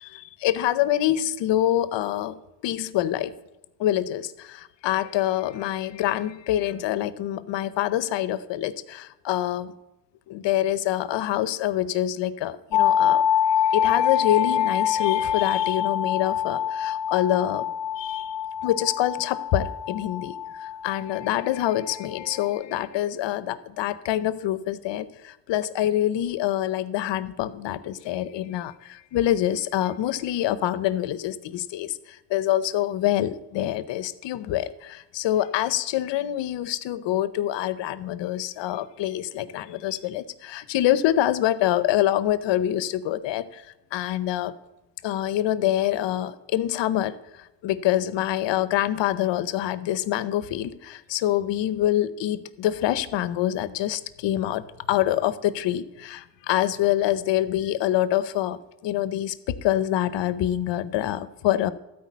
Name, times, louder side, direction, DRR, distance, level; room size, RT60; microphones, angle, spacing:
voice 1, 0.0-3.3 3.8-9.7 10.3-13.2 13.7-17.7 18.0-18.3 18.6-20.3 20.6-43.6 43.9-44.5 45.0-47.2 47.6-54.6 54.9-61.7, left 12 dB, 85° left, 16 dB, 0.8 m, -26 dB
sound 1, 12.7-22.5, left 9 dB, 65° left, 1.2 m, -25 dB
13.0 x 4.8 x 8.4 m, 0.97 s
cardioid pair, 70°, 43 cm